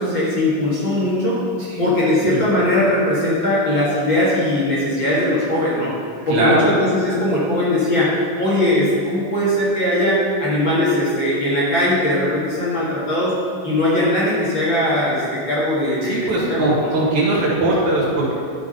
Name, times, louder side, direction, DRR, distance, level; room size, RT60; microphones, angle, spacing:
voice 1, 0.0-1.4 1.8-5.9 6.3-8.1 8.4-13.4 13.6-16.9, left 1 dB, 40° left, -7 dB, 2.2 m, -19 dB
voice 2, 6.3-6.7 16.0-18.3, right 2 dB, 65° right, -5 dB, 3.2 m, -20 dB
12.0 x 6.0 x 5.5 m, 2.3 s
omnidirectional pair, 3.7 m